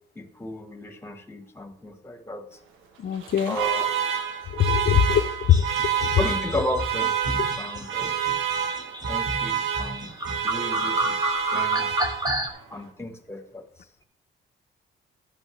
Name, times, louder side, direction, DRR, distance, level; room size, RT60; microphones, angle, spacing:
voice 1, 0.1-2.6 3.5-4.0 6.1-8.1 9.1-10.1 10.4-12.0 12.7-13.6, left 1 dB, 10° left, 7 dB, 1.3 m, -34 dB
voice 2, 3.0-3.6 4.5-5.7 6.0-6.1, left 9 dB, 55° left, 12 dB, 0.6 m, -21 dB
Alarm, 3.1-12.6, right 8 dB, 85° right, 1.1 m, -28 dB
sound 1, 5.5-12.5, right 1 dB, 20° right, 1.4 m, -31 dB
12.0 x 8.8 x 3.2 m, 0.65 s
cardioid pair, 90°, 20 cm